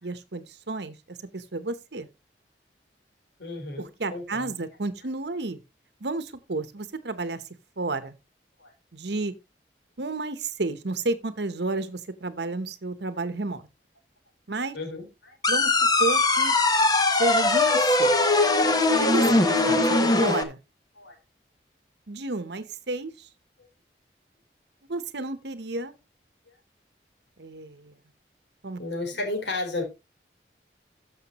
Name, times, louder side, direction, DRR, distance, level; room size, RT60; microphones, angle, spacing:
voice 1, 0.0-2.1 3.8-5.6 6.0-7.4 7.8-8.2 8.9-9.3 10.0-13.7 14.5-14.8 15.5-16.5 17.2-18.2 19.0-19.8 20.2-20.6 22.1-23.1 24.9-25.9 27.4-27.9 28.6-28.8, right 2 dB, 75° right, 1.0 m, -31 dB
voice 2, 3.4-4.5 8.6-8.7 14.7-15.4 16.7-16.8 19.6-19.8 21.0-21.2 28.8-29.8, left 2 dB, 80° left, 3.9 m, -33 dB
sound 1, 15.4-20.4, left 2 dB, 20° left, 1.1 m, -21 dB
14.0 x 6.6 x 3.0 m
head